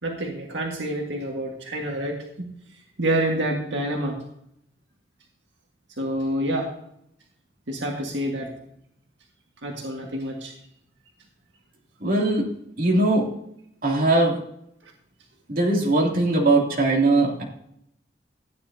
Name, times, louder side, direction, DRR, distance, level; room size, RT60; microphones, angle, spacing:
voice 1, 0.0-2.5 3.0-4.2 6.0-6.7 7.7-8.5 9.6-10.5, right 1 dB, 85° right, 1 dB, 1.8 m, -27 dB
voice 2, 12.0-12.5 12.8-13.3 13.8-14.4 15.5-17.4, right 2 dB, 50° right, -2 dB, 2.7 m, -20 dB
14.5 x 9.8 x 2.8 m, 0.73 s
head